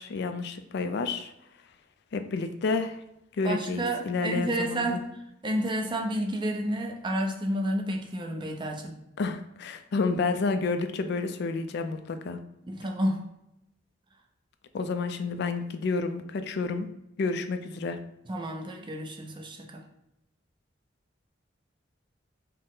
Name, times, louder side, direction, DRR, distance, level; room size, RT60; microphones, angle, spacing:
voice 1, 0.0-1.3 2.1-3.0 3.4-5.0 9.2-12.4 14.7-16.9 17.2-18.0, left 4 dB, 60° left, 9 dB, 0.4 m, -30 dB
voice 2, 3.4-5.1 5.4-9.0 12.7-13.2 18.3-19.8, right 1 dB, 25° right, 2 dB, 0.5 m, -30 dB
4.1 x 2.1 x 3.7 m, 0.87 s
head